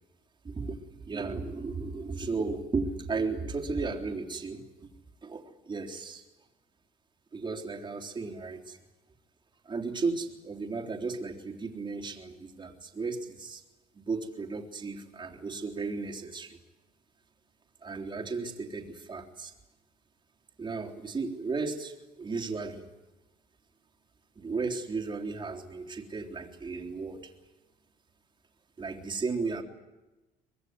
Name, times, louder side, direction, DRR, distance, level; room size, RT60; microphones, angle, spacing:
voice 1, 0.4-4.9 5.2-6.2 7.3-8.8 9.7-13.6 13.9-16.6 17.8-19.5 20.6-22.9 24.4-27.3 28.8-29.6, right 4 dB, 25° right, 1 dB, 3.7 m, -35 dB
24.5 x 21.0 x 9.6 m, 1.1 s
cardioid pair, 110°, 17 cm